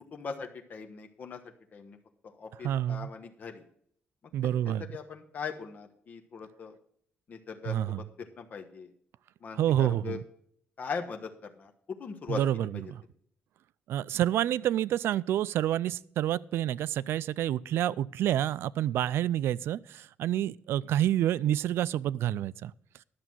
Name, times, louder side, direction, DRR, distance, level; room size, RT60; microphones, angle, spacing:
voice 1, 0.1-1.4 1.7-2.0 2.2-3.6 4.4-6.7 7.3-8.0 8.4-8.9 9.4-10.2 10.8-11.3 11.6-12.4, left 5 dB, 45° left, 4 dB, 1.2 m, -40 dB
voice 2, 2.6-3.1 4.3-4.9 7.6-8.0 9.5-10.2 12.3-13.0 13.9-22.7, right 12 dB, 85° right, 20 dB, 0.3 m, -28 dB
11.5 x 6.9 x 6.1 m, 0.64 s
cardioid pair, 135°, 4 cm